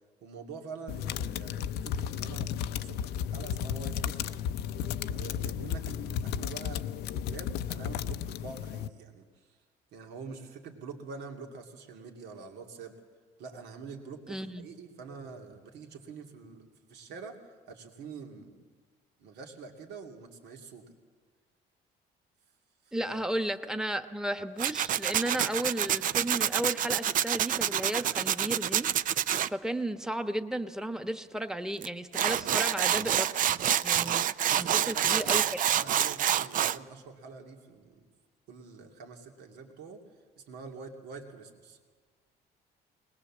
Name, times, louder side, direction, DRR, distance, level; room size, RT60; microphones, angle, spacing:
voice 1, 0.2-4.4 5.1-9.4 9.9-12.9 13.4-17.4 17.7-18.6 19.2-20.9 22.8-23.2 34.5-35.4 35.7-38.0 38.5-40.0 40.4-41.8, right 5 dB, 85° right, 2 dB, 2.7 m, -46 dB
sound 1, 0.9-8.9, left 9 dB, 75° left, 0.6 m, -34 dB
voice 2, 14.3-14.6 22.9-28.9 29.5-33.5 33.8-34.2 34.6-35.6, right 1 dB, 5° right, 8 dB, 1.2 m, -34 dB
Tools, 24.6-29.5 31.8-31.9 32.1-36.8, right 10 dB, 55° right, 0.6 m, -27 dB
21.5 x 20.0 x 7.4 m, 1.5 s
cardioid pair, 110°, 17 cm